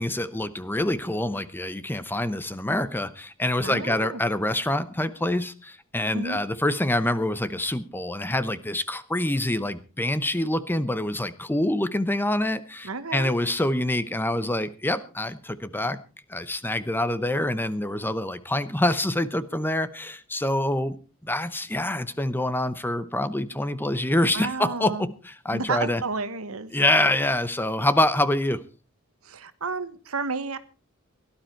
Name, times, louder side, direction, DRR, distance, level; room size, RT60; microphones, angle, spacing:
voice 1, 0.0-16.0 16.3-21.0 21.2-26.0 26.7-28.6, left 1 dB, 10° left, 13 dB, 0.8 m, -26 dB
voice 2, 3.6-4.2 6.1-6.4 12.8-13.4 24.3-25.1 25.5-26.7 29.2-30.6, right 4 dB, 70° right, 12 dB, 1.3 m, -31 dB
17.5 x 12.0 x 4.5 m, 0.34 s
head